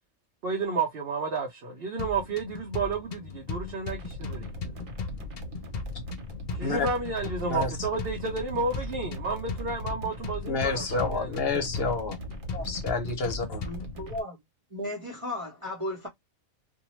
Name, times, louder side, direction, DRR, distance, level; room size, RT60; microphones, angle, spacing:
voice 1, 0.4-4.6 6.5-11.6, right 4 dB, 50° right, 0.8 m, -31 dB
sound 1, 2.0-14.0, left 4 dB, 85° left, 0.3 m, -38 dB
sound 2, 3.8-14.2, equal, 75° right, 1.3 m, -40 dB
voice 2, 10.5-12.2 12.6-13.7, left 4 dB, 50° left, 1.0 m, -29 dB
voice 3, 13.6-14.4 14.7-16.1, left 1 dB, 25° right, 0.9 m, -35 dB
2.7 x 2.2 x 2.9 m
omnidirectional pair, 1.4 m